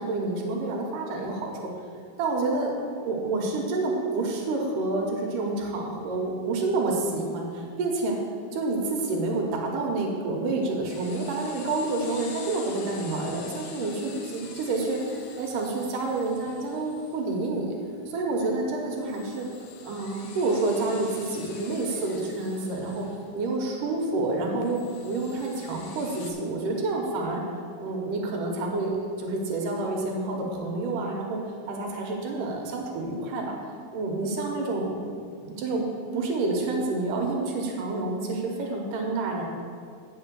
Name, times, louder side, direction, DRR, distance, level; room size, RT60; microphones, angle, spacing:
voice 1, 0.0-1.5 2.2-2.7 3.1-8.2 8.5-17.8 18.1-19.5 19.8-23.1 23.3-27.4 27.8-33.5 33.9-35.0 35.4-35.9 36.1-39.4, right 2 dB, 90° right, 1 dB, 2.8 m, -28 dB
sound 1, 10.9-26.3, left 5 dB, 70° left, 1.4 m, -47 dB
9.0 x 5.5 x 6.9 m, 2.2 s
omnidirectional pair, 3.6 m